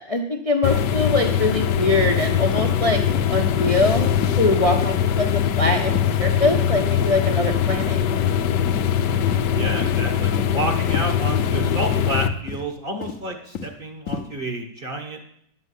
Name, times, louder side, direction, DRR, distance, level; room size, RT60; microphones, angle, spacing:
voice 1, 0.0-5.3 5.6-8.3, left 2 dB, 25° left, 2 dB, 0.8 m, -23 dB
sound 1, 0.6-12.3, left 8 dB, 80° left, 1.3 m, -22 dB
sound 2, 1.9-2.2 2.5-2.7 3.1-3.3 3.6-3.8 4.2-4.4 4.8-4.9 5.3-5.5 5.9-6.1 6.4-6.6 7.0-7.2 7.6-7.7 8.1-8.3 8.7-8.9 9.2-9.5 9.8-10.0 10.3-10.5 10.9-11.1 11.4-11.6 11.9-12.1 12.5-12.7 13.0-13.8 14.1-14.2, left 6 dB, 55° left, 1.1 m, -32 dB
voice 2, 9.1-15.2, right 1 dB, 35° right, 4 dB, 1.3 m, -30 dB
10.5 x 6.1 x 8.3 m, 0.69 s
omnidirectional pair, 1.8 m